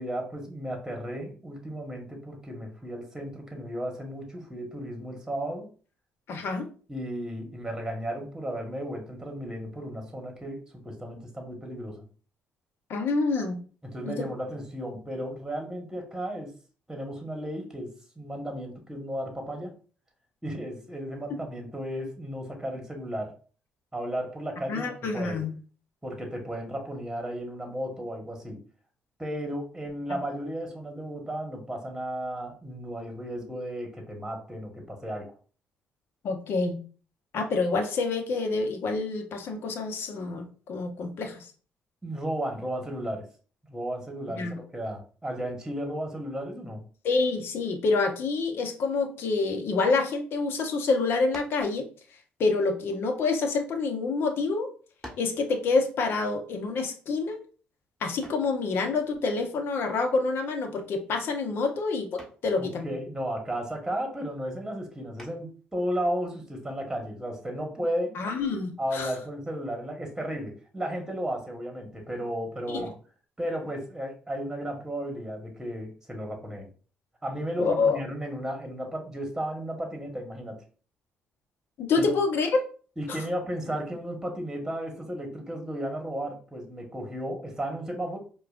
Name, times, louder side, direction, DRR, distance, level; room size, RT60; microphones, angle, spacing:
voice 1, 0.0-5.7 6.9-12.0 13.9-16.5 16.9-19.7 20.4-23.3 23.9-25.4 26.0-28.6 29.2-35.3 42.0-43.2 43.7-46.8 62.6-68.2 68.8-72.9 73.4-76.7 77.2-80.6 82.0-82.1 83.0-88.2, equal, 10° right, 2 dB, 1.3 m, -34 dB
voice 2, 6.3-6.7 12.9-13.6 14.0-14.2 21.3-21.4 24.7-25.5 36.2-36.8 37.3-41.5 44.4-44.6 47.0-51.9 52.4-54.7 55.2-57.4 58.0-62.9 68.1-69.1 72.7-72.8 77.6-78.0 81.8-82.6 83.1-83.2, left 3 dB, 65° left, 5 dB, 0.8 m, -27 dB
sound 1, 51.3-51.7 52.6-53.8 54.5-54.6 55.0-55.4 58.2-58.6 60.5-60.8 61.2-61.6 62.2-62.5 65.2-65.6, equal, 10° left, 1.4 m, -46 dB
4.7 x 2.3 x 2.4 m, 0.39 s
supercardioid pair, 55°, 4 cm